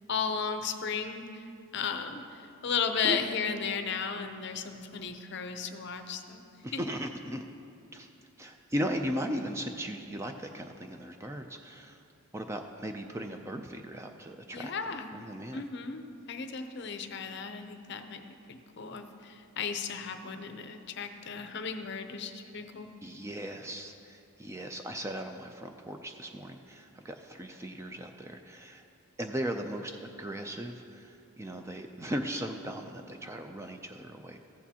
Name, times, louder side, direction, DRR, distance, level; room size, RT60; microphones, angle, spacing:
voice 1, 0.1-1.4 1.7-6.4 6.7-6.8 14.5-15.1 15.5-22.9, left 6 dB, 50° left, 7 dB, 0.6 m, -35 dB
voice 2, 6.6-7.4 7.9-8.1 8.4-12.0 12.3-15.7 23.0-28.8 29.2-34.4, equal, 10° right, 5 dB, 0.3 m, -37 dB
15.0 x 8.4 x 2.8 m, 2.6 s
head